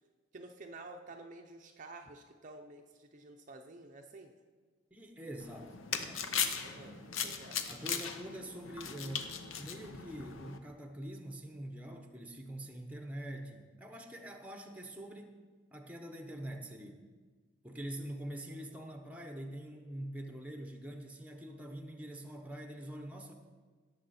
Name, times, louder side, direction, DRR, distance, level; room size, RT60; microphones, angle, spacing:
voice 1, 0.3-4.3 6.6-6.9 7.2-7.6, right 2 dB, 35° right, 3 dB, 0.6 m, -50 dB
voice 2, 4.9-6.3 6.8-7.0 7.7-15.4 15.7-17.0 17.6-23.3, right 1 dB, 5° right, 4 dB, 0.8 m, -45 dB
sound 1, 5.4-10.6, left 7 dB, 70° left, 0.8 m, -38 dB
17.5 x 7.0 x 4.2 m, 1.5 s
head